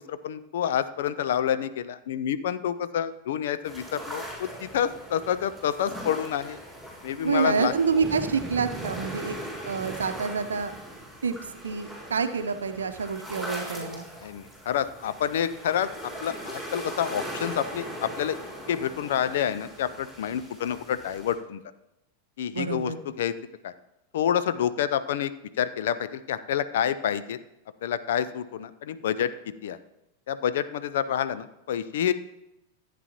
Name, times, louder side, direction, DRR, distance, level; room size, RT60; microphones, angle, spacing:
voice 1, 0.1-6.6 7.0-7.7 14.2-15.9 16.2-18.4 18.7-21.6 22.4-22.9 23.2-23.3 23.6-23.7 24.1-25.3 25.6-27.4 27.8-29.3 29.6-29.8 30.3-32.1, left 9 dB, 55° left, 13 dB, 0.5 m, -28 dB
sound 1, 3.6-21.3, equal, 5° left, 4.0 m, -40 dB
voice 2, 7.2-9.4 9.6-10.7 11.2-11.4 11.6-14.1 22.5-23.0, right 5 dB, 70° right, 9 dB, 0.7 m, -27 dB
sound 2, 8.0-11.1, right 4 dB, 25° right, 0.8 m, -41 dB
14.5 x 8.5 x 3.0 m, 0.89 s
figure-of-eight pair, 90°, 0 cm